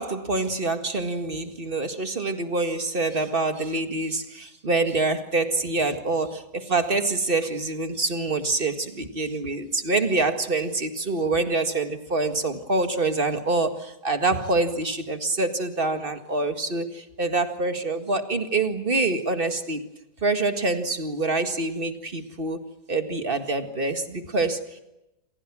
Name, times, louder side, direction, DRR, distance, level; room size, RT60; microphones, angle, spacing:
voice 1, 0.0-19.8 20.2-24.8, right 3 dB, 35° right, 7 dB, 2.0 m, -26 dB
29.0 x 26.0 x 6.2 m, 0.94 s
omnidirectional pair, 1.7 m